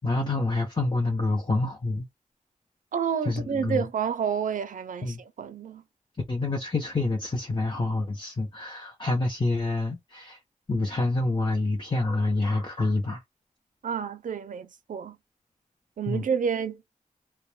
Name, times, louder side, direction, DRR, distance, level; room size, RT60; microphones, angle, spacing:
voice 1, 0.0-2.1 3.3-3.8 5.0-5.2 6.3-10.4 10.7-13.2 16.1-16.2, left 2 dB, 35° left, 0.7 m, -27 dB
voice 2, 2.9-5.8 13.8-15.2 16.0-16.9, right 7 dB, 70° right, 0.4 m, -29 dB
2.1 x 2.1 x 3.1 m
wide cardioid pair, 60°, 14 cm